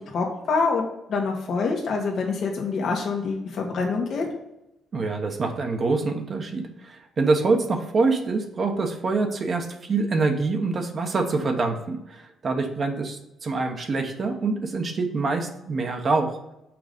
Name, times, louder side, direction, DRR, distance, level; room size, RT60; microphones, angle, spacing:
voice 1, 0.1-0.8 1.1-4.2, left 4 dB, 60° left, 0 dB, 1.4 m, -25 dB
voice 2, 4.9-16.3, right 3 dB, 45° right, 4 dB, 1.0 m, -25 dB
6.0 x 3.9 x 5.1 m, 0.90 s
cardioid pair, 90°, 0 cm